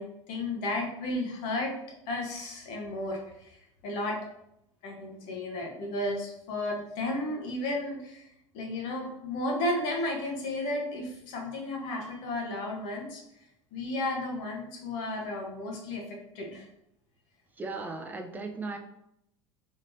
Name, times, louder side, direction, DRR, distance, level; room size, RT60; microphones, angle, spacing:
voice 1, 0.0-1.8 2.1-4.2 4.8-8.3 8.5-13.2 13.7-16.7, left 1 dB, 55° left, 0 dB, 1.1 m, -33 dB
voice 2, 17.6-18.8, right 3 dB, 10° right, 4 dB, 0.5 m, -36 dB
3.7 x 3.2 x 2.7 m, 0.77 s
figure-of-eight pair, 75°, 17 cm